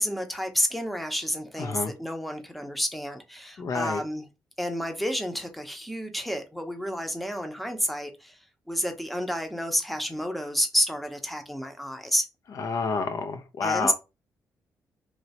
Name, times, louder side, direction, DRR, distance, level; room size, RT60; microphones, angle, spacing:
voice 1, 0.0-4.3 4.6-8.4 8.7-12.3 13.6-13.9, equal, ahead, 0.7 m, -30 dB
voice 2, 1.6-1.9 3.6-4.0 12.6-13.9, left 5 dB, 55° left, 0.4 m, -29 dB
3.1 x 2.8 x 2.8 m
cardioid pair, 100°, 7 cm